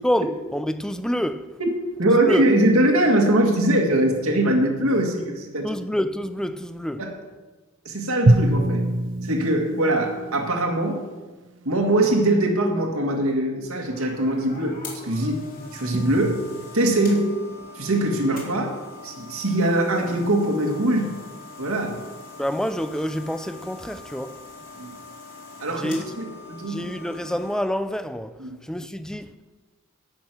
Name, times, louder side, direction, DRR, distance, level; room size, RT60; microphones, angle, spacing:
voice 1, 0.0-1.6 2.1-2.4 5.6-7.1 22.4-24.4 25.7-26.1 26.6-29.3, equal, 5° left, 0.4 m, -27 dB
voice 2, 2.0-5.7 7.0-7.1 7.9-8.9 9.2-11.0 11.7-14.8 15.0-15.4 15.7-16.4 16.7-17.3 17.8-18.8 19.0-21.1 21.6-22.0 24.8-25.0 25.6-26.9 28.4-28.5, right 1 dB, 90° right, 2.0 m, -22 dB
Drum, 8.3-11.2, right 1 dB, 60° right, 0.8 m, -23 dB
sound 1, 13.6-27.6, left 3 dB, 40° left, 3.4 m, -42 dB
16.0 x 6.3 x 6.2 m
head